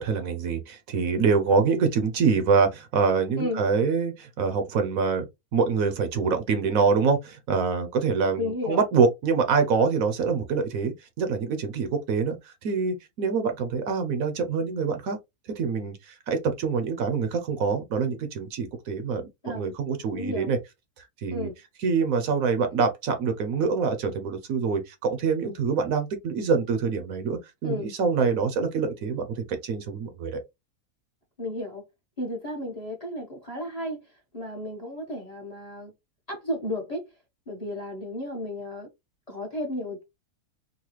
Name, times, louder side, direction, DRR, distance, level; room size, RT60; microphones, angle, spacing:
voice 1, 0.0-5.3 5.5-15.2 15.6-20.6 21.0-21.5 21.8-30.4, right 5 dB, 70° right, 1.1 m, -25 dB
voice 2, 8.4-8.8 19.4-19.6 20.1-20.5 21.3-21.5 27.6-27.9 31.4-31.8 32.2-34.0 34.3-35.9 36.3-37.1 37.5-38.9 39.3-40.0, left 1 dB, 30° left, 1.0 m, -33 dB
4.0 x 2.2 x 3.0 m
omnidirectional pair, 1.6 m